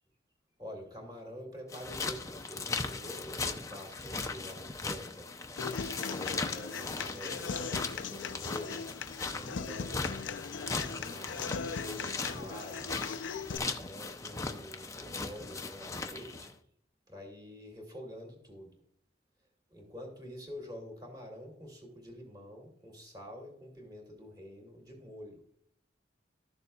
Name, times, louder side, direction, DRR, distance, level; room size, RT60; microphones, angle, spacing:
voice 1, 0.6-5.3 6.1-8.9 9.2-10.1 10.8-13.0 13.8-16.5 17.1-18.7 19.7-25.4, equal, 20° right, 1 dB, 2.4 m, -47 dB
sound 1, 1.7-16.5, left 3 dB, 15° left, 0.5 m, -38 dB
Human voice / Acoustic guitar, 5.6-13.6, left 5 dB, 80° left, 0.5 m, -39 dB
13.5 x 6.8 x 2.3 m, 0.67 s
head